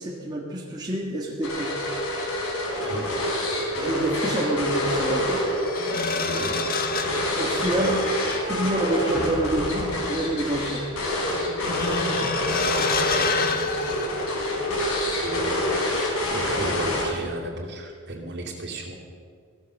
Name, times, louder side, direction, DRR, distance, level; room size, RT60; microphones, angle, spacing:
voice 1, 0.0-1.7 3.8-5.4 7.4-8.0 8.4-10.8, right 1 dB, 20° right, -3 dB, 1.5 m, -28 dB
sound 1, 1.4-17.4, left 1 dB, 75° left, 4.4 m, -27 dB
sound 2, 3.7-3.9 5.1-14.8 15.1-15.4, left 4 dB, 40° left, 1.4 m, -30 dB
voice 2, 6.2-6.6 12.1-12.4 15.2-15.9 16.3-19.0, right 1 dB, 50° right, 0 dB, 2.6 m, -34 dB
16.5 x 13.0 x 6.6 m, 2.2 s
head